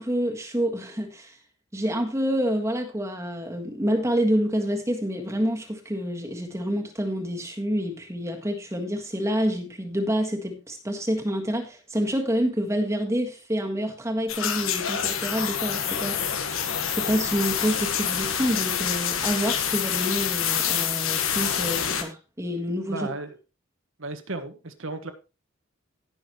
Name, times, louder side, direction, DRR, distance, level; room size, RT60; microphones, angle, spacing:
voice 1, 0.0-1.4 1.7-16.6 16.9-23.1, equal, 15° right, 1.6 m, -28 dB
sound 1, 14.3-22.0, left 8 dB, 80° left, 1.4 m, -27 dB
voice 2, 22.9-23.4 24.0-25.1, right 2 dB, 70° right, 1.5 m, -34 dB
18.0 x 6.3 x 3.0 m
head